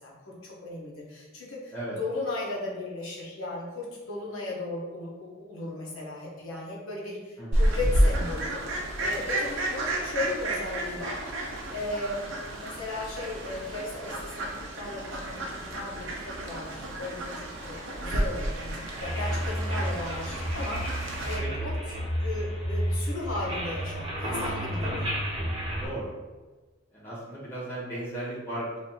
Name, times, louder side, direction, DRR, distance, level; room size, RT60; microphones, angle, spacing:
voice 1, 0.0-11.4 11.7-17.3 17.6-25.3, left 2 dB, 90° left, -4 dB, 1.0 m, -36 dB
voice 2, 7.4-7.7 21.4-21.7 25.8-26.2 26.9-28.8, right 1 dB, 10° left, -9 dB, 1.4 m, -36 dB
Fowl, 7.5-21.4, right 1 dB, 65° right, 0.8 m, -31 dB
sound 1, 19.0-25.9, equal, 25° right, 0.9 m, -31 dB
3.2 x 2.7 x 4.2 m, 1.3 s
head